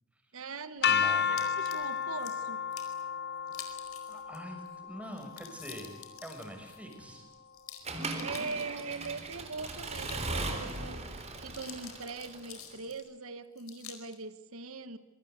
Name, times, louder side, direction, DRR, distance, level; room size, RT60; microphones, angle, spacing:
voice 1, 0.3-2.6 8.2-15.0, right 4 dB, 75° right, 11 dB, 1.4 m, -41 dB
sound 1, 0.8-6.8, left 7 dB, 50° left, 1.1 m, -33 dB
voice 2, 0.9-1.3 4.1-7.3, equal, 5° right, 3 dB, 6.3 m, -44 dB
sound 2, 1.4-2.3 2.7-3.0 3.5-4.4 4.7-4.8 5.0-9.1 9.6-10.8 11.2-13.1 13.6-14.2, left 10 dB, 85° left, 4.6 m, -49 dB
Accelerating revving vroom / Mechanisms, 7.9-12.8, right 2 dB, 30° right, 3.8 m, -38 dB
26.5 x 24.0 x 8.2 m, 1.0 s
head